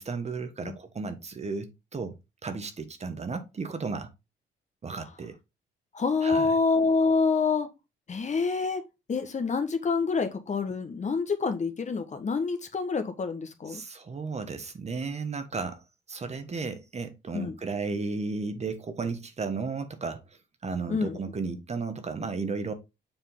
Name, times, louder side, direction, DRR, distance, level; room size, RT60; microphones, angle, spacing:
voice 1, 0.0-4.1 4.8-5.4 6.2-6.6 13.7-15.8 16.1-20.2 20.6-22.7, right 4 dB, 35° right, 1.2 m, -34 dB
voice 2, 5.9-7.7 8.1-8.8 9.1-13.8 17.3-17.5 20.9-21.1, left 4 dB, 35° left, 1.1 m, -27 dB
7.1 x 3.7 x 3.6 m
cardioid pair, 90°, 20 cm